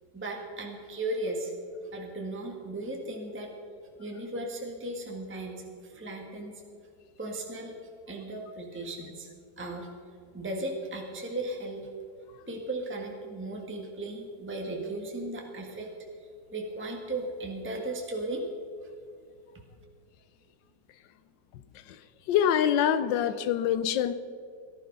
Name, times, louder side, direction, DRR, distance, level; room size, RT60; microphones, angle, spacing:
voice 1, 0.1-1.5 1.9-3.5 4.0-6.6 7.2-7.7 8.1-9.3 9.6-9.9 10.3-11.9 12.5-15.9 16.5-18.4, right 2 dB, 5° right, 0 dB, 1.5 m, -36 dB
voice 2, 22.3-24.1, left 9 dB, 90° left, 13 dB, 1.4 m, -25 dB
18.0 x 12.0 x 5.4 m, 2.3 s
omnidirectional pair, 1.9 m